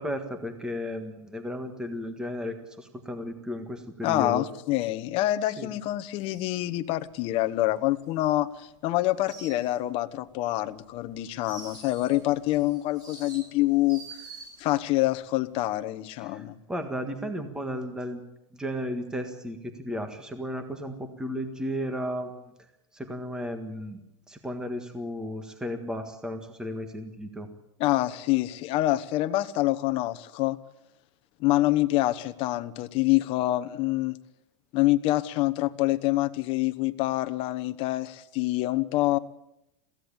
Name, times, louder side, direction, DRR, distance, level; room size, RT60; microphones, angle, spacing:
voice 1, 0.0-4.4 5.6-5.7 16.2-18.2 18.5-22.5 22.9-24.0 24.3-27.5, equal, 5° right, 7 dB, 1.7 m, -34 dB
voice 2, 4.0-14.0 14.6-16.6 27.8-30.6 31.4-34.1 34.7-39.2, left 16 dB, 35° left, 10 dB, 1.1 m, -26 dB
sound 1, 6.2-8.7 9.0-10.3 10.6-14.9 15.2-15.6, right 4 dB, 25° right, 4.2 m, -48 dB
22.0 x 16.0 x 8.8 m, 0.88 s
supercardioid pair, 160°, 16 cm